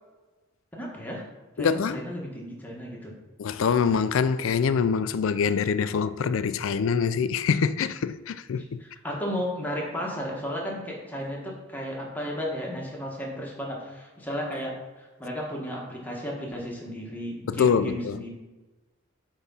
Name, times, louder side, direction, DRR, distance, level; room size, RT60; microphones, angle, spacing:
voice 1, 0.7-1.2 1.6-3.1 8.6-18.3, equal, 10° left, 1.4 m, -34 dB
voice 2, 1.6-2.0 3.4-8.8 17.5-18.2, left 6 dB, 75° left, 0.4 m, -25 dB
8.1 x 3.6 x 5.5 m
head